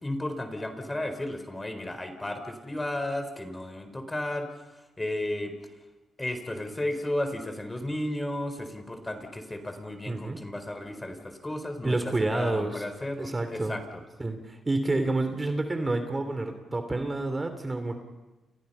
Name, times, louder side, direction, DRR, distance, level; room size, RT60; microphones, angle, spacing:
voice 1, 0.0-4.5 5.0-5.5 6.2-13.8, left 1 dB, 15° left, 8 dB, 4.3 m, -33 dB
voice 2, 10.1-10.4 11.8-12.8 13.2-13.8 14.2-18.0, right 2 dB, 20° right, 7 dB, 3.1 m, -29 dB
30.0 x 29.5 x 5.7 m, 1.1 s
cardioid pair, 90°, 0 cm